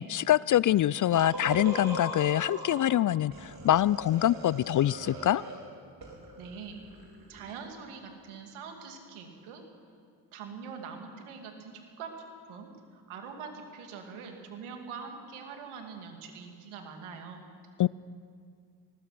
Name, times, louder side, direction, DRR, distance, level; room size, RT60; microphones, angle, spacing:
voice 1, 0.0-5.4 17.8-17.9, left 12 dB, 40° left, 22 dB, 0.4 m, -25 dB
sound 1, 1.1-2.9 3.3-5.7 6.0-7.6, right 1 dB, 45° right, 4.2 m, -40 dB
voice 2, 6.4-6.8 7.3-9.6 10.3-12.2 12.5-17.5, right 5 dB, 80° right, 4 dB, 2.7 m, -43 dB
24.0 x 19.5 x 5.9 m, 2.2 s
hypercardioid pair, 45°, 49 cm